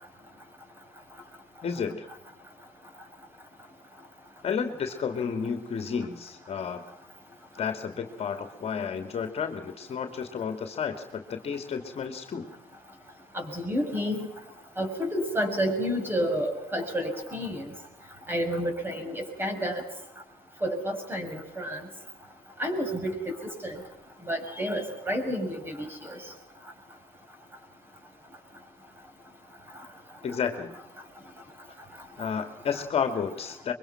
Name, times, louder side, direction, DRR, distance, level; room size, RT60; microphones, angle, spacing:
voice 1, 1.6-2.1 4.4-6.8 7.6-12.5 30.2-30.7 32.2-33.7, left 6 dB, 45° left, 6 dB, 2.6 m, -31 dB
voice 2, 13.3-14.3 14.8-17.7 18.3-19.8 20.6-21.8 22.6-23.3 23.6-23.8 24.3-26.2, equal, 15° right, 5 dB, 6.3 m, -30 dB
24.0 x 23.0 x 6.0 m, 0.83 s
cardioid pair, 105°, 15 cm